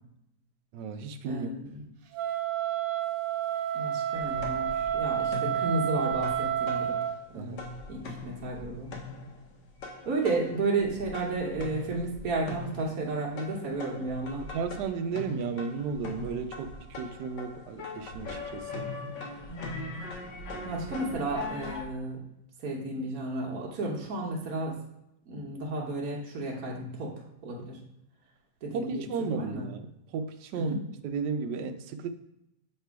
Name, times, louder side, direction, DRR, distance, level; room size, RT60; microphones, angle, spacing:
voice 1, 0.7-1.5 7.3-7.6 14.4-18.9 20.5-20.8 28.7-30.8 31.0-32.1, right 5 dB, 70° right, 7 dB, 1.1 m, -34 dB
voice 2, 1.2-1.8 3.7-7.0 7.3-8.9 10.0-14.4 19.5-19.8 20.6-22.2 22.6-24.8 25.3-27.8 28.6-29.7 30.5-30.8, right 2 dB, 55° right, -2 dB, 1.4 m, -33 dB
Wind instrument woodwind instrument, 2.1-7.2, right 9 dB, 90° right, 1.4 m, -30 dB
sound 1, 4.1-7.3 7.6-21.8, left 3 dB, 75° left, 1.6 m, -41 dB
6.6 x 3.3 x 4.6 m, 0.83 s
omnidirectional pair, 2.0 m